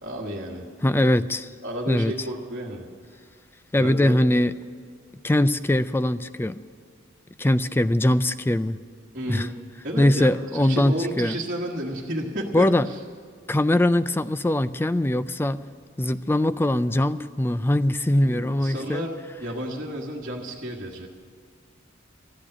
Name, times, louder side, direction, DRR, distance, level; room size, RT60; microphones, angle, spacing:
voice 1, 0.0-0.7 1.6-2.9 3.8-4.2 9.1-9.6 9.8-13.0 18.1-21.1, equal, 45° right, -6 dB, 1.4 m, -32 dB
voice 2, 0.8-1.5 1.9-2.1 3.7-4.5 5.2-6.6 7.4-8.8 9.3-9.5 10.0-11.4 12.5-12.9 13.5-15.6 16.0-19.0, left 1 dB, 10° left, 13 dB, 0.3 m, -22 dB
13.5 x 8.5 x 10.0 m, 2.1 s
head